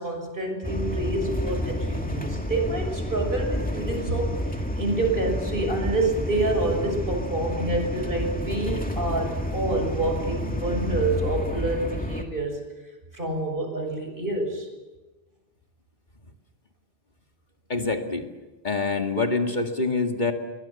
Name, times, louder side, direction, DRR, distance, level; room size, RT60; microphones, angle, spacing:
voice 1, 0.0-4.3 4.8-12.6 13.1-14.7, right 2 dB, 55° right, 4 dB, 6.7 m, -27 dB
sound 1, 0.6-12.2, equal, 10° left, 2.3 m, -30 dB
voice 2, 17.7-18.2 18.6-20.3, left 3 dB, 45° left, 3 dB, 2.3 m, -25 dB
29.0 x 23.0 x 7.2 m, 1.2 s
omnidirectional pair, 1.1 m